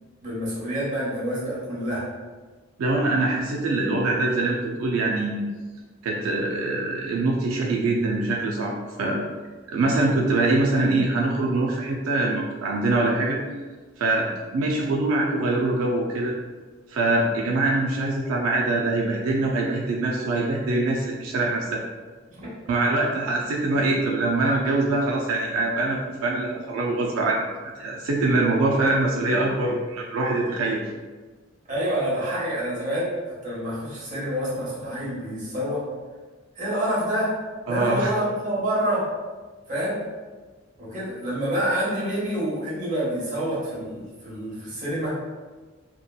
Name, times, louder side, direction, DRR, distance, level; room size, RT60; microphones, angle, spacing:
voice 1, 0.2-2.1 22.3-22.5 31.7-35.8 36.5-37.3 37.7-39.0 39.7-40.0 40.8-45.2, equal, 35° right, -7 dB, 0.9 m, -27 dB
voice 2, 2.8-5.4 6.0-9.2 9.7-13.4 14.0-14.3 14.5-16.3 16.9-21.8 22.7-27.5 27.8-30.8 37.7-38.1, right 2 dB, 85° right, -2 dB, 0.4 m, -23 dB
2.8 x 2.2 x 2.3 m, 1.3 s
head